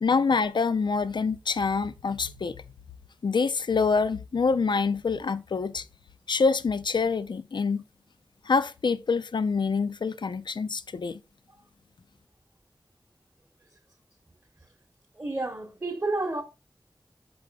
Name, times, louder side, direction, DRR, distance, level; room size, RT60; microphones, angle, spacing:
voice 1, 0.0-2.6 3.2-5.9 6.3-7.8 8.5-11.2, left 4 dB, 75° left, 0.4 m, -26 dB
voice 2, 15.1-16.4, right 2 dB, 30° right, 0.8 m, -30 dB
4.8 x 4.7 x 2.2 m
wide cardioid pair, 60°, 8 cm